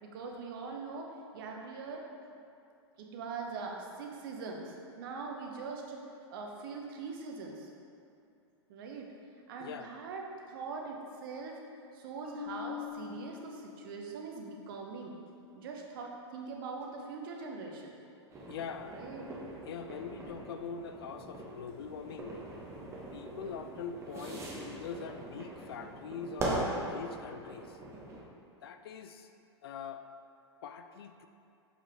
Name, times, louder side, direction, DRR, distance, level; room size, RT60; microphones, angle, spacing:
voice 1, 0.0-2.0 3.0-6.0 6.3-7.7 8.7-9.1 9.5-10.2 10.5-11.6 11.9-15.2 15.5-18.0 18.9-19.3, right 4 dB, 50° right, 1 dB, 1.0 m, -42 dB
voice 2, 9.6-9.9 18.5-19.0 19.6-22.4 23.1-27.8 28.6-29.3 29.6-30.0 30.6-31.3, left 6 dB, 55° left, 8 dB, 0.5 m, -43 dB
Marimba xylophone, 12.2-14.3, left 9 dB, ahead, 1.4 m, -44 dB
sound 1, 18.3-28.2, right 1 dB, 20° right, 1.3 m, -41 dB
6.8 x 5.5 x 3.5 m, 2.6 s
figure-of-eight pair, 100°, 15 cm